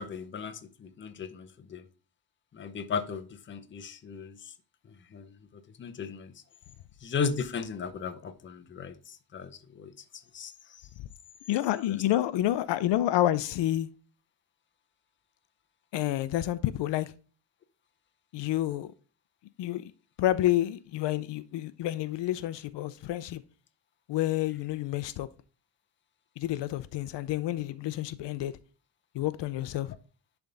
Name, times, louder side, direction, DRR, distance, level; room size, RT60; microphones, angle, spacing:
voice 1, 0.0-1.8 2.5-4.5 5.1-5.3 5.8-6.3 7.0-9.9 10.3-10.8, left 5 dB, 30° left, 0.6 m, -36 dB
voice 2, 11.5-13.9 15.9-17.1 18.3-18.9 19.6-19.9 20.2-23.4 24.1-25.3 26.4-28.5 29.1-30.0, left 14 dB, 75° left, 0.6 m, -29 dB
10.5 x 3.5 x 3.9 m
cardioid pair, 165°, 43 cm